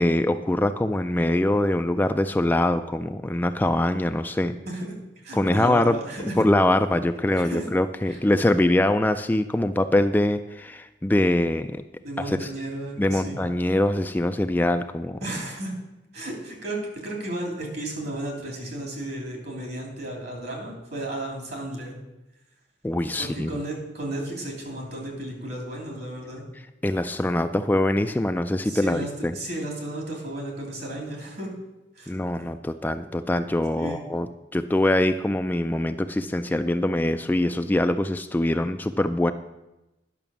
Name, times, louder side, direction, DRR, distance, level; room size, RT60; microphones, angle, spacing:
voice 1, 0.0-4.5 5.3-6.0 6.4-11.8 12.3-12.5 13.0-15.2 22.8-23.5 26.8-29.3 32.1-39.3, left 1 dB, 10° left, 8 dB, 0.3 m, -23 dB
voice 2, 4.7-6.4 7.3-7.7 8.1-8.2 12.0-13.4 15.2-15.7 16.1-22.0 23.0-26.4 28.6-31.5 31.9-32.1 33.7-34.0, right 1 dB, 60° right, 0 dB, 3.1 m, -34 dB
10.5 x 5.9 x 7.0 m, 0.98 s
head